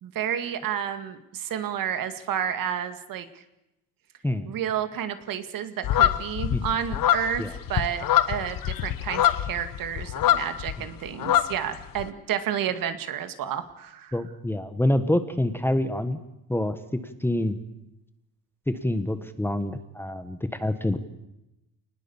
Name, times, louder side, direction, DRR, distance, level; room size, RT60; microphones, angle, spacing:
voice 1, 0.0-3.3 4.4-7.4 7.7-14.1, right 9 dB, 60° right, 9 dB, 2.1 m, -30 dB
sound 1, 5.8-10.8 11.1-12.1, left 12 dB, 60° left, 1.3 m, -24 dB
voice 2, 14.1-16.2 16.5-17.6 18.7-21.0, left 1 dB, 5° left, 10 dB, 1.3 m, -26 dB
28.0 x 20.0 x 7.2 m, 0.92 s
cardioid pair, 145°, 37 cm